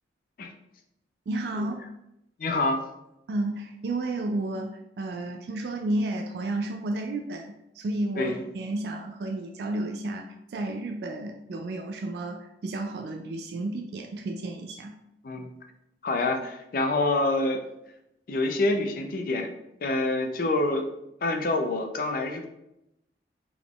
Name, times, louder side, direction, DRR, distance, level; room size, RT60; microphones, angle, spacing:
voice 1, 1.3-1.9 3.3-14.9, right 2 dB, 65° right, 2 dB, 0.3 m, -32 dB
voice 2, 2.4-2.8 8.2-8.4 15.2-15.5 16.0-17.6 18.3-19.5 19.8-20.8 21.2-22.5, left 2 dB, 50° left, 4 dB, 0.4 m, -26 dB
3.7 x 3.5 x 2.3 m, 0.85 s
head